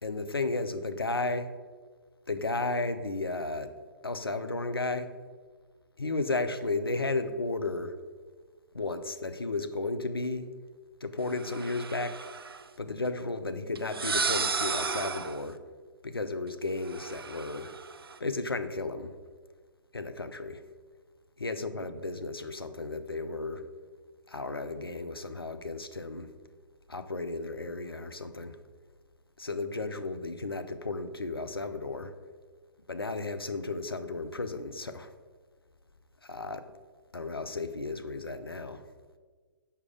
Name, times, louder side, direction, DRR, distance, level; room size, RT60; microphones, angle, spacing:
voice 1, 0.0-1.5 2.3-3.7 4.0-5.1 6.0-7.9 8.7-10.5 11.0-12.2 12.8-15.6 16.0-17.7 18.2-19.1 19.9-20.6 21.4-23.6 24.3-26.3 26.9-28.6 29.4-32.1 32.9-35.1 36.2-36.7 37.1-38.8, left 3 dB, 90° left, 9 dB, 0.5 m, -33 dB
Bed Hydraulic, 11.3-12.6 13.8-15.5 16.8-18.2, right 5 dB, 85° right, 0.4 m, -33 dB
5.6 x 4.7 x 4.9 m, 1.5 s
figure-of-eight pair, 125°, 12 cm